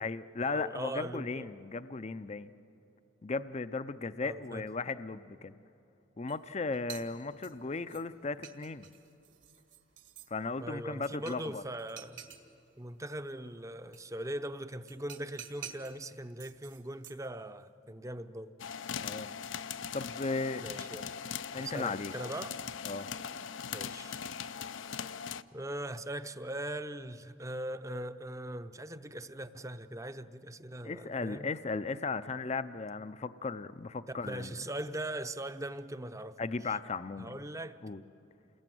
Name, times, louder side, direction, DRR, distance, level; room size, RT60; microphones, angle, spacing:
voice 1, 0.0-2.5 3.2-5.5 6.2-8.9 10.3-11.6 19.0-19.3 19.9-20.6 21.5-22.1 22.8-23.1 30.8-34.6 36.4-37.4 37.8-38.0, left 3 dB, 35° left, 0.5 m, -36 dB
voice 2, 0.5-1.5 4.2-4.7 10.6-12.2 12.8-18.5 20.6-21.1 21.6-22.6 23.7-24.6 25.5-31.5 34.2-36.4 36.7-36.8 37.2-37.8, right 1 dB, 15° right, 0.7 m, -40 dB
sound 1, 6.3-6.4 6.7-8.0 8.4-10.3 11.0-11.5 11.8-12.4 13.9-14.0 14.9-16.0 16.4-17.3, right 9 dB, 70° right, 2.0 m, -49 dB
sound 2, 18.6-25.4, left 7 dB, 75° left, 0.6 m, -40 dB
28.5 x 20.5 x 9.2 m
head